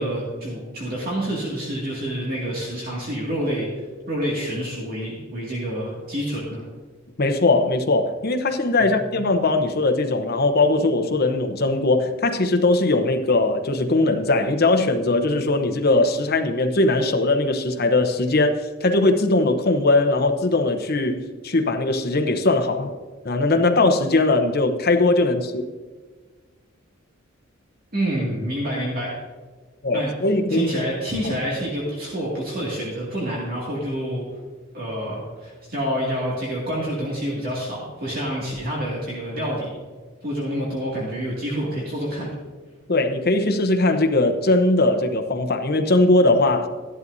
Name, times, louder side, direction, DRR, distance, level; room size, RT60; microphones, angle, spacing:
voice 1, 0.0-6.6 8.8-9.1 27.9-29.2 29.9-30.1 30.5-34.3 34.7-39.7 40.2-42.3, equal, 45° right, -5 dB, 2.2 m, -28 dB
voice 2, 7.2-18.6 18.8-22.9 23.2-25.6 29.8-30.7 42.9-46.7, left 2 dB, 50° left, 6 dB, 0.9 m, -20 dB
14.0 x 11.5 x 2.7 m, 1.4 s
head